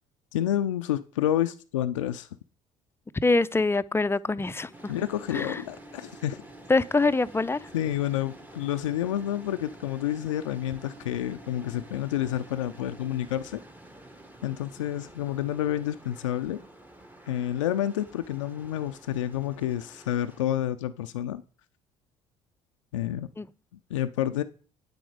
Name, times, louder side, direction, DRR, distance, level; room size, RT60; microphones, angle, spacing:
voice 1, 0.3-2.3 4.9-6.4 7.7-13.6 14.4-16.6 17.3-21.4 22.9-23.3 23.9-24.4, left 12 dB, 90° left, 0.5 m, -29 dB
voice 2, 3.2-4.9 5.3-5.6 6.7-7.7 23.4-23.5, left 3 dB, 15° left, 0.6 m, -24 dB
sound 1, 4.7-20.4, right 1 dB, 10° right, 1.2 m, -49 dB
9.1 x 7.9 x 4.9 m
hypercardioid pair, 60°, 16 cm